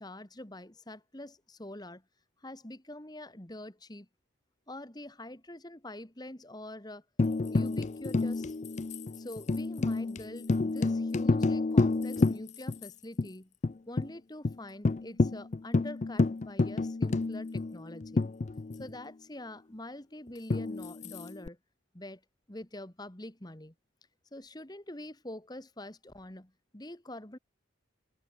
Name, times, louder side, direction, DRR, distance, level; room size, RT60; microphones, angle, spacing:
voice 1, 0.0-2.0 2.4-4.1 4.7-7.0 7.4-8.5 9.2-13.5 13.9-18.3 18.8-21.6 21.9-22.2 22.5-23.7 24.3-27.4, left 1 dB, 20° left, 1.6 m, -45 dB
Tambourine, 7.2-12.9 13.2-13.3 13.6-14.1 14.4-14.6 14.9-19.0 20.5-21.5, left 3 dB, 35° left, 0.4 m, -29 dB
head